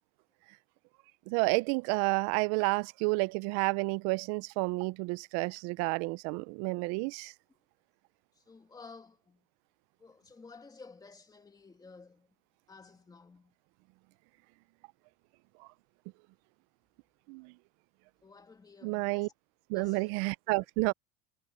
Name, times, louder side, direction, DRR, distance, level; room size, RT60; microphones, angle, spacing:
voice 1, 1.3-7.3 17.3-17.5 18.8-19.3 19.7-20.9, right 27 dB, 55° right, 0.5 m, -30 dB
voice 2, 8.4-9.4 10.0-12.3 12.7-13.5 18.2-19.3 19.7-20.1 20.5-20.6, left 4 dB, 10° left, 2.3 m, -53 dB
cardioid pair, 155°, 31 cm